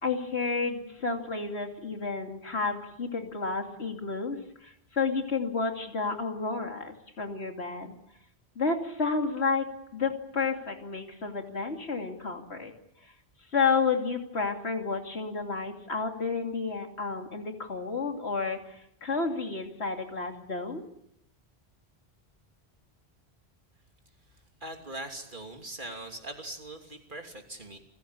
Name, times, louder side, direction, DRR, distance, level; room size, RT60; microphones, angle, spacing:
voice 1, 0.0-7.9 8.6-12.7 13.0-13.1 13.5-20.8, left 4 dB, 90° left, 4 dB, 3.0 m, -31 dB
voice 2, 24.6-27.8, right 1 dB, 50° right, 3 dB, 3.3 m, -41 dB
29.0 x 16.0 x 8.6 m, 0.78 s
omnidirectional pair, 1.1 m